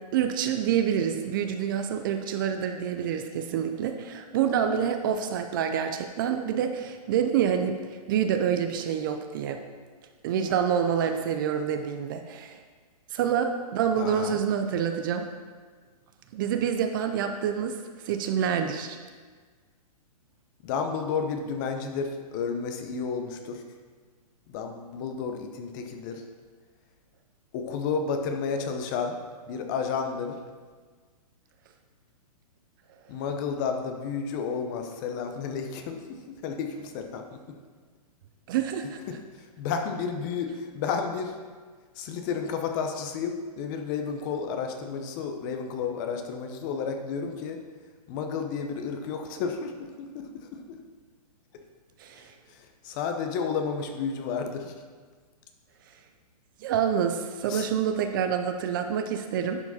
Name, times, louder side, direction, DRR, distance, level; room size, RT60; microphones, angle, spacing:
voice 1, 0.1-7.8 8.1-9.6 10.2-12.6 13.1-15.2 16.3-19.0 38.5-39.0 52.0-52.3 56.6-59.6, right 8 dB, 35° right, 7 dB, 0.4 m, -27 dB
voice 2, 14.0-14.4 20.6-23.6 24.5-26.2 27.5-29.2 29.5-30.4 33.1-37.6 39.1-41.4 42.0-47.6 48.1-50.8 52.2-54.8 57.5-57.7, left 5 dB, 30° left, 5 dB, 0.7 m, -32 dB
10.5 x 4.8 x 4.1 m, 1.5 s
hypercardioid pair, 155°, 20 cm